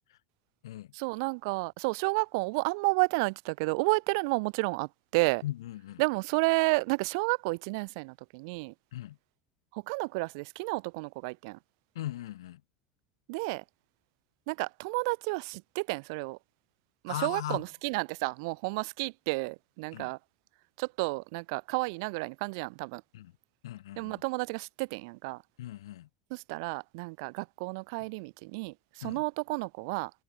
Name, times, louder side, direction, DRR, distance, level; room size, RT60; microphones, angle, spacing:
voice 1, 0.9-5.4 6.0-8.7 9.7-11.6 13.3-13.6 14.5-16.4 17.0-20.2 20.8-23.0 24.0-25.4 26.3-30.1, right 29 dB, 70° right, 0.4 m, -31 dB
voice 2, 5.4-6.0 8.9-9.2 11.9-12.6 17.1-17.6 19.9-20.1 23.1-23.3 23.6-24.2 25.6-26.1 29.0-29.2, left 14 dB, 85° left, 2.9 m, -38 dB
supercardioid pair, 100°, 2 cm